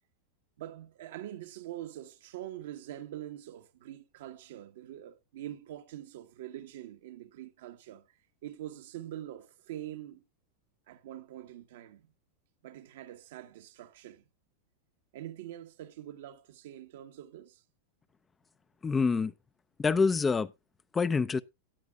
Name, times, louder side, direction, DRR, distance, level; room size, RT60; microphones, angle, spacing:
voice 1, 0.6-8.0 8.4-10.2 10.9-12.1 12.6-14.2 15.1-17.6, right 12 dB, 70° right, 1.2 m, -44 dB
voice 2, 18.8-19.3 19.8-20.5 20.9-21.4, left 4 dB, 20° left, 0.5 m, -26 dB
16.5 x 9.6 x 2.3 m
hypercardioid pair, 100°, 0 cm